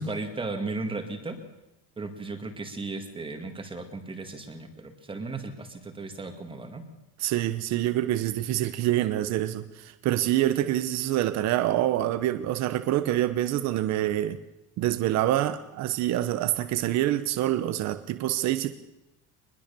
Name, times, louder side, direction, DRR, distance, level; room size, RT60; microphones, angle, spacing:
voice 1, 0.0-1.4 2.0-6.8, right 3 dB, 15° right, 6 dB, 2.0 m, -35 dB
voice 2, 7.2-14.4 14.8-18.7, right 13 dB, 50° right, 11 dB, 1.0 m, -26 dB
23.5 x 21.5 x 6.9 m, 0.93 s
cardioid pair, 180°, 36 cm